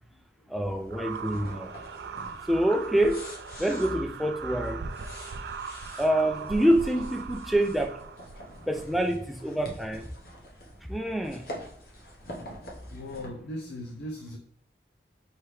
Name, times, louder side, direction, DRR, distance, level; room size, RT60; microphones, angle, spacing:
voice 1, 0.5-1.7 2.5-3.3 3.6-4.9 6.0-8.0 8.7-10.1 10.9-11.5, right 1 dB, ahead, 4 dB, 0.4 m, -26 dB
sound 1, 0.6-13.3, equal, 55° left, 1.1 m, -46 dB
sound 2, 0.9-9.0, right 5 dB, 70° right, 0.3 m, -40 dB
voice 2, 12.9-14.4, left 1 dB, 80° left, 2 dB, 0.5 m, -38 dB
4.7 x 3.1 x 3.1 m, 0.70 s
head